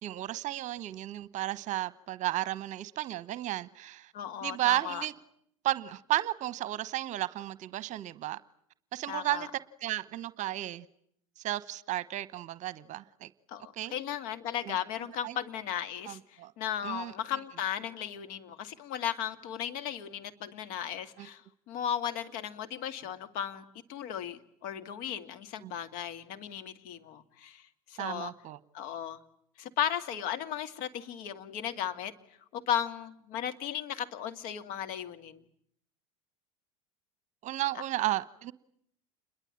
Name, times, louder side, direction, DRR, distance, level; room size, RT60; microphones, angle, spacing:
voice 1, 0.0-4.1 4.4-5.1 5.6-8.4 8.9-9.5 9.8-10.8 11.4-13.3 13.8-13.9 14.6-14.8 15.2-15.4 16.1-16.5 16.8-17.1 21.2-21.3 25.6-25.7 28.0-28.6 37.4-38.5, right 15 dB, 45° right, 1.1 m, -33 dB
voice 2, 4.1-5.1 9.1-9.5 13.5-23.6 23.9-28.3 28.7-29.2 29.6-32.1 32.5-35.4, left 9 dB, 55° left, 2.2 m, -36 dB
28.5 x 22.0 x 8.8 m
hypercardioid pair, 80°, 17 cm